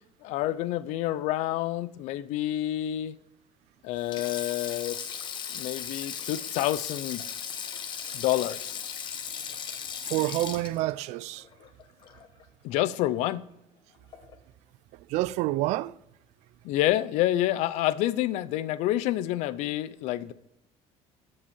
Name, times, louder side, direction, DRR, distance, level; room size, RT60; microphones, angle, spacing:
voice 1, 0.2-3.2 3.8-5.0 5.5-7.2 8.1-8.8 12.6-13.5 16.6-20.3, left 14 dB, 65° left, 0.6 m, -28 dB
Sink (filling or washing), 4.0-12.4 12.7-12.9 14.1-14.4, left 8 dB, 35° left, 1.0 m, -37 dB
voice 2, 10.0-11.5 15.1-16.0, right 17 dB, 60° right, 0.4 m, -28 dB
13.5 x 5.4 x 7.1 m
cardioid pair, 175°, 13 cm